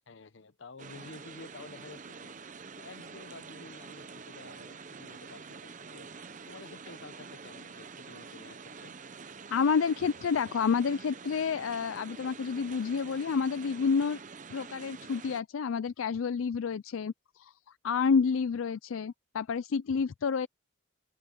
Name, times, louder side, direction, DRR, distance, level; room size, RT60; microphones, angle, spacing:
voice 1, 0.1-2.3 2.8-6.1 6.4-8.9, left 3 dB, 65° left, 0.9 m, -51 dB
sound 1, 0.8-15.4, right 5 dB, 40° right, 0.8 m, -47 dB
voice 2, 9.5-14.2 14.5-17.1 17.4-17.5 17.8-20.5, left 5 dB, 85° left, 0.4 m, -29 dB
open air
head